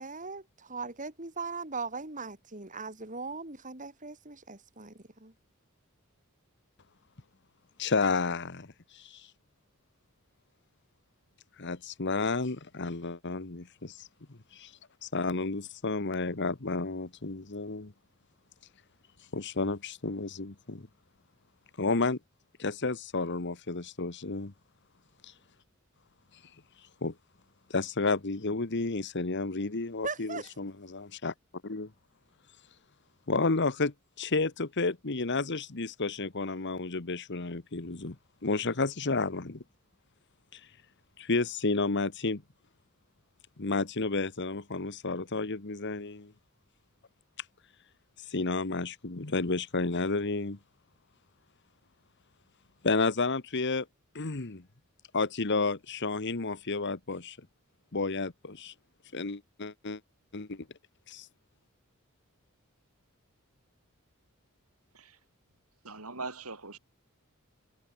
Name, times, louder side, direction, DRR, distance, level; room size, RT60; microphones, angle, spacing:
voice 1, 0.0-5.3 30.0-30.5, right 4 dB, 35° right, 4.6 m, -39 dB
voice 2, 7.8-9.3 11.6-14.7 15.0-17.9 19.3-20.9 21.8-22.2 22.6-24.5 25.2-25.3 27.0-27.1 27.7-31.3 31.6-31.9 33.3-38.2 38.4-39.6 40.5-40.6 41.2-42.4 43.6-46.3 48.3-50.6 52.8-53.9 54.2-54.6 55.1-57.4 57.9-58.7 59.1-60.0 60.3-60.7 61.1-61.3, left 3 dB, 55° left, 1.3 m, -31 dB
voice 3, 65.8-66.8, right 3 dB, 80° right, 7.7 m, -41 dB
head